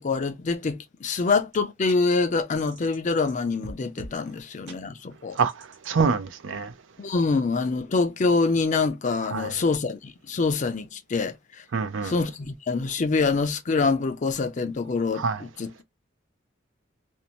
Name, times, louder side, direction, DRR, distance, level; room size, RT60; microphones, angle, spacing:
voice 1, 0.0-5.4 7.0-11.6 12.1-15.2 15.6-15.7, left 4 dB, 40° left, 0.4 m, -25 dB
sound 1, 1.2-1.3 1.5-1.6 1.9-2.0 2.6-3.3 3.6-4.2 4.7-4.8 5.4-5.9, right 1 dB, 60° right, 0.9 m, -42 dB
voice 2, 5.3-6.7 9.2-9.6 11.7-12.2 15.1-15.5, right 5 dB, 80° right, 0.5 m, -26 dB
2.6 x 2.0 x 2.8 m
head